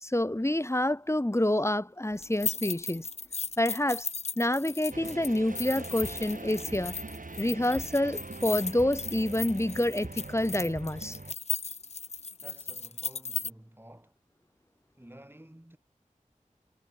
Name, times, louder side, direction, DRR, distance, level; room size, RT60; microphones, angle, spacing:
voice 1, 0.0-3.1 3.6-4.1 4.4-7.0 7.4-11.2, left 1 dB, 20° left, 1.6 m, -28 dB
sound 1, 2.2-13.5, left 5 dB, 50° left, 0.4 m, -37 dB
sound 2, 4.9-11.3, right 3 dB, 75° right, 2.9 m, -42 dB
voice 2, 12.2-14.2 15.0-15.8, right 1 dB, 15° right, 6.2 m, -52 dB
wide cardioid pair, 45°, 14 cm